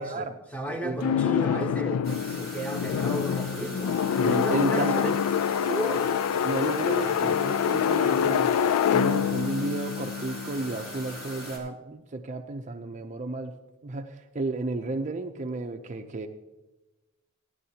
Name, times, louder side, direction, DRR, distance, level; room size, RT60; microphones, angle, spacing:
voice 1, 0.0-5.1 5.6-6.1 7.0-7.4 8.0-8.6, right 2 dB, 5° left, 1.0 m, -35 dB
voice 2, 0.7-1.0 4.2-5.2 6.4-8.5 8.9-13.5 13.8-16.3, right 2 dB, 35° right, 0.5 m, -32 dB
sound 1, 1.0-11.0, left 8 dB, 85° left, 0.3 m, -26 dB
Bedroom Room Tone Electric Lamp Hum, 2.0-11.6, equal, 60° left, 4.1 m, -41 dB
16.5 x 11.0 x 2.8 m
head